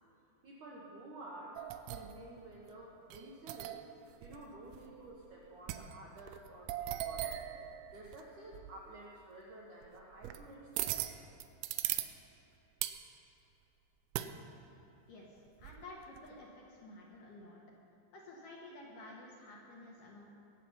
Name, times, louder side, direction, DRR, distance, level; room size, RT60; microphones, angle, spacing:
voice 1, 0.4-3.8 4.2-7.4 7.9-11.3, right 2 dB, 70° right, -4 dB, 1.9 m, -51 dB
sound 1, 1.6-2.4 3.1-3.9 4.2-4.4 4.7-5.3 5.7-8.2 8.5-8.8 9.8-10.4 10.8-12.1 12.8-13.1 14.1-14.4 15.6-16.3, right 13 dB, 90° right, 3.2 m, -39 dB
voice 2, 15.1-17.6 18.1-20.2, left 2 dB, 60° left, -3 dB, 2.4 m, -52 dB
21.5 x 8.3 x 5.7 m, 3.0 s
omnidirectional pair, 5.5 m